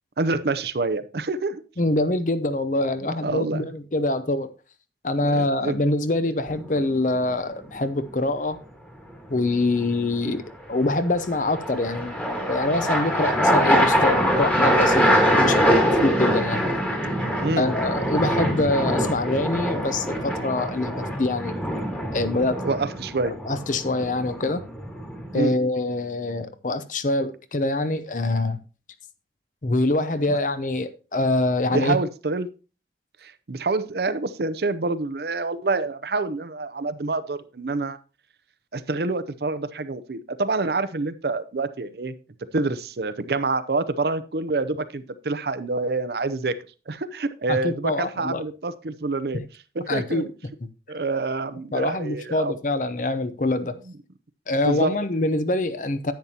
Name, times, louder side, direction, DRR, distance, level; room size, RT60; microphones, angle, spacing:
voice 1, 0.2-1.6 3.2-3.7 5.2-5.8 6.2-6.3 17.4-17.7 22.6-23.3 25.3-25.6 30.3-30.4 31.7-32.5 33.2-38.0 38.7-42.1 42.5-46.6 46.9-49.4 49.8-50.3 50.9-52.5 54.6-54.9, right 3 dB, 65° right, 0.6 m, -27 dB
voice 2, 1.8-4.5 5.0-8.6 9.3-16.6 17.6-21.5 22.1-22.6 23.4-24.6 25.3-28.6 29.6-32.0 47.5-48.4 49.9-50.3 51.7-53.7 54.5-56.1, left 2 dB, 45° left, 0.7 m, -25 dB
sound 1, 6.5-7.0 10.8-25.4, equal, 10° left, 1.6 m, -23 dB
10.5 x 8.8 x 2.9 m
head